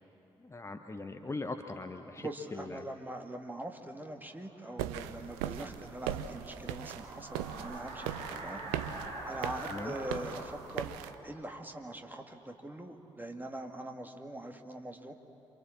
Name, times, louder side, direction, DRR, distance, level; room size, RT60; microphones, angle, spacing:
voice 1, 0.4-2.9 9.7-9.9, left 3 dB, 20° left, 6 dB, 1.3 m, -40 dB
voice 2, 2.2-8.6 9.3-11.0 11.2-15.1, right 1 dB, 15° right, 4 dB, 2.3 m, -42 dB
sound 1, 4.2-12.9, right 2 dB, 45° right, 7.0 m, -46 dB
sound 2, 4.8-11.1, right 11 dB, 70° right, 0.8 m, -39 dB
28.0 x 26.5 x 7.4 m, 2.9 s
figure-of-eight pair, 45°, 14 cm